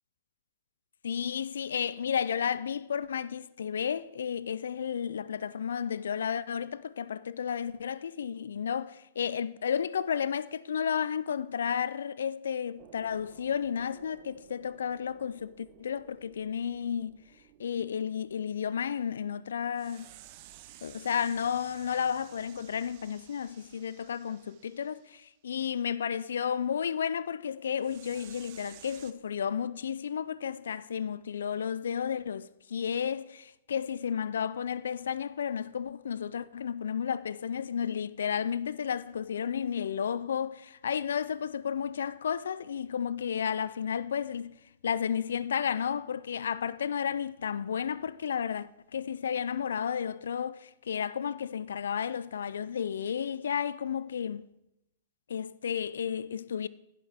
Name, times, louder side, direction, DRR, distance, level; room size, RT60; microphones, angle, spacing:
voice 1, 1.0-17.2 17.6-20.1 20.8-44.6 44.8-54.4 55.3-56.7, left 8 dB, 75° left, 0.4 m, -32 dB
sound 1, 12.8-19.2 19.7-25.2 27.8-29.1, right 13 dB, 50° right, 0.7 m, -55 dB
11.5 x 10.5 x 3.5 m
hypercardioid pair, 105°, 0 cm